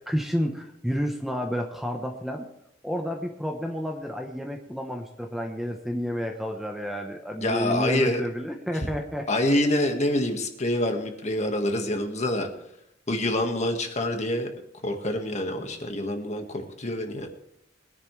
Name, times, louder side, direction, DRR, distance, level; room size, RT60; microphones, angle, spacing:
voice 1, 0.0-2.5 2.8-9.3, equal, ahead, 3 dB, 0.9 m, -30 dB
voice 2, 7.4-8.2 8.8-8.9 9.3-12.5 13.1-14.5 14.8-17.3, left 1 dB, 35° left, 5 dB, 1.6 m, -26 dB
21.0 x 10.5 x 3.3 m, 0.78 s
head